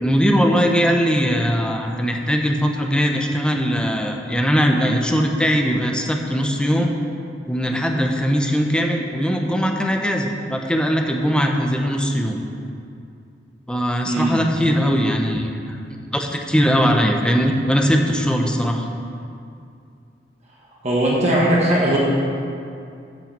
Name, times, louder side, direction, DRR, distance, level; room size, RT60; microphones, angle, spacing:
voice 1, 0.0-6.9 7.5-12.4 13.7-15.8 16.1-18.9, equal, 5° left, 2 dB, 0.8 m, -20 dB
voice 2, 14.0-14.4 20.8-22.0, right 1 dB, 40° right, -5 dB, 1.4 m, -19 dB
10.5 x 5.7 x 7.4 m, 2.5 s
head